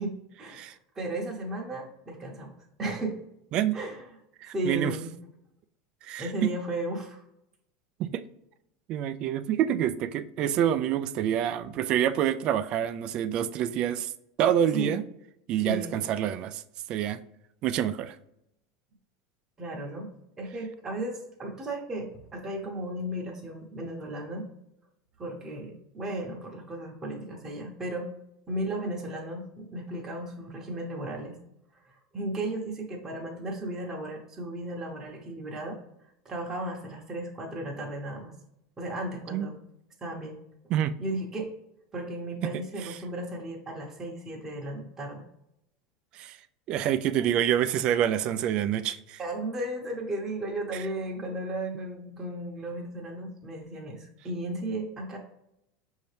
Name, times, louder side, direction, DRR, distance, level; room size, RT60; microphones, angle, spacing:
voice 1, 0.0-3.2 3.7-4.0 4.5-5.1 6.2-7.2 14.7-15.0 15.6-16.0 19.6-20.1 20.4-24.5 25.2-28.1 28.5-31.4 31.8-35.8 36.2-38.3 38.8-39.6 40.0-40.4 41.0-41.5 41.9-45.2 49.2-55.2, right 1 dB, 20° right, 0.9 m, -35 dB
voice 2, 4.4-4.9 6.0-6.5 8.0-8.2 8.9-14.1 14.4-15.0 15.5-16.6 16.9-17.2 17.6-18.2 39.3-39.5 40.7-40.9 42.4-42.5 46.1-46.4 46.7-49.2 50.7-50.8, right 10 dB, 50° right, 0.3 m, -27 dB
5.5 x 2.7 x 3.3 m
supercardioid pair, 115°, 2 cm